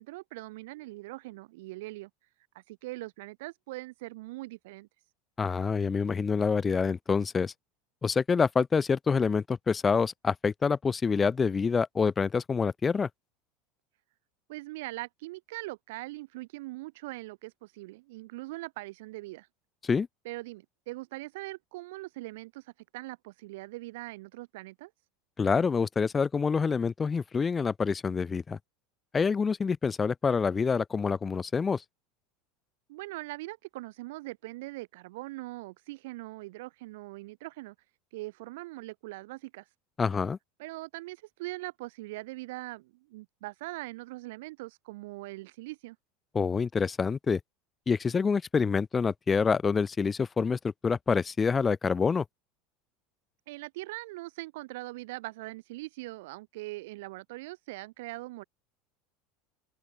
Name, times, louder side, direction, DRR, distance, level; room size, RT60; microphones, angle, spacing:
voice 1, 0.0-2.1 2.5-4.9 14.5-19.5 20.2-24.9 32.9-37.7 38.1-39.6 40.6-46.0 53.5-58.4, right 20 dB, 80° right, 2.5 m, -41 dB
voice 2, 5.4-7.5 8.0-13.1 19.8-20.1 25.4-28.6 29.1-31.8 40.0-40.4 46.3-47.4 47.9-52.2, left 5 dB, 20° left, 0.9 m, -27 dB
open air
supercardioid pair, 110°, 0 cm